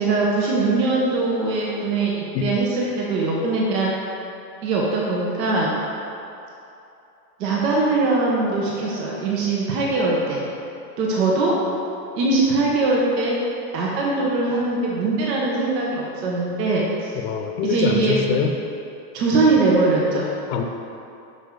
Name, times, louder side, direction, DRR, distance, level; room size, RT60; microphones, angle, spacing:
voice 1, 0.0-3.9 4.6-5.7 7.4-10.4 11.0-11.5 12.2-13.4 13.7-17.2 17.6-18.2 19.1-20.3, right 3 dB, 75° right, -4 dB, 1.4 m, -21 dB
voice 2, 11.1-11.4 17.2-18.6 20.5-20.6, left 6 dB, 65° left, 5 dB, 0.8 m, -24 dB
8.0 x 6.1 x 3.9 m, 2.8 s
supercardioid pair, 145°, 49 cm